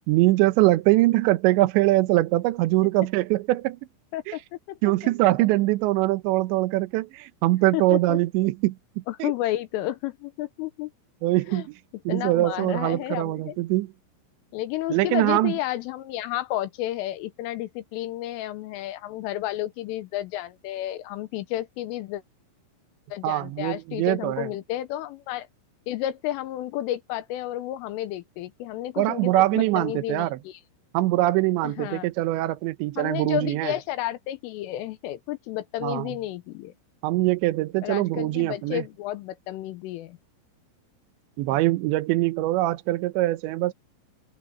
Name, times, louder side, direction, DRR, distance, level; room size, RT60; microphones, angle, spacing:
voice 1, 0.1-3.8 4.3-4.4 4.8-8.7 9.2-9.3 11.2-11.8 12.1-13.9 14.9-15.5 23.2-24.5 29.0-30.4 30.9-33.7 35.8-36.1 37.0-38.8 41.4-43.7, right 18 dB, 80° right, 2.7 m, -23 dB
voice 2, 7.7-8.2 9.1-10.9 11.5-11.7 12.1-13.6 14.5-22.2 23.1-25.5 25.9-30.6 31.6-32.1 33.0-36.7 37.8-40.2 41.5-41.6, left 14 dB, 80° left, 3.4 m, -31 dB
omnidirectional pair, 6.0 m